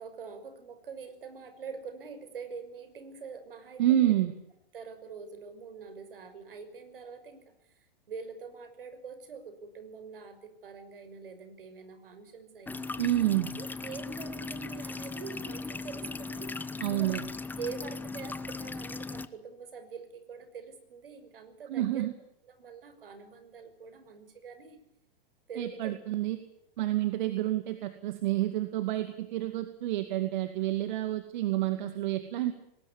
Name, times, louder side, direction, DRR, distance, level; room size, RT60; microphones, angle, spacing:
voice 1, 0.0-4.1 4.7-7.4 8.1-12.8 13.6-17.2 17.6-22.1 22.5-24.8 25.5-26.0, right 5 dB, 70° right, 10 dB, 5.9 m, -44 dB
voice 2, 3.8-4.3 13.0-13.5 16.8-17.2 21.7-22.1 25.6-26.4 26.8-32.5, right 14 dB, 50° right, 9 dB, 2.4 m, -29 dB
sound 1, 12.7-19.3, left 3 dB, 5° left, 1.1 m, -38 dB
22.0 x 20.0 x 9.8 m, 0.78 s
figure-of-eight pair, 105°, 29 cm